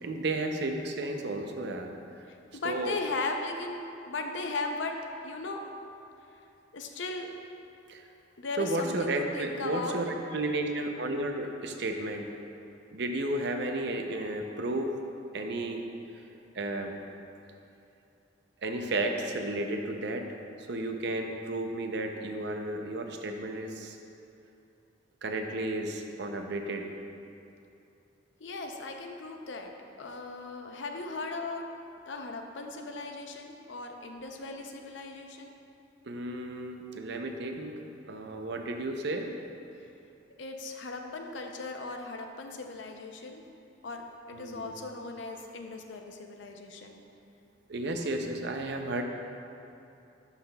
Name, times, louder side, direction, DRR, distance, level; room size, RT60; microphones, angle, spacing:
voice 1, 0.0-1.9 2.6-2.9 7.9-8.0 8.6-12.3 12.9-15.0 15.3-15.8 16.5-16.9 18.6-20.2 20.6-24.0 25.2-26.9 36.0-37.7 38.1-39.3 44.3-44.8 47.7-49.0, right 2 dB, 65° right, 4 dB, 0.6 m, -33 dB
voice 2, 2.3-5.0 5.2-5.6 6.3-6.4 6.7-7.3 8.4-10.0 28.4-29.7 30.0-31.6 32.1-35.5 40.4-43.4 43.8-47.0, left 3 dB, 75° left, 3 dB, 0.6 m, -37 dB
12.0 x 5.7 x 2.3 m, 2.8 s
head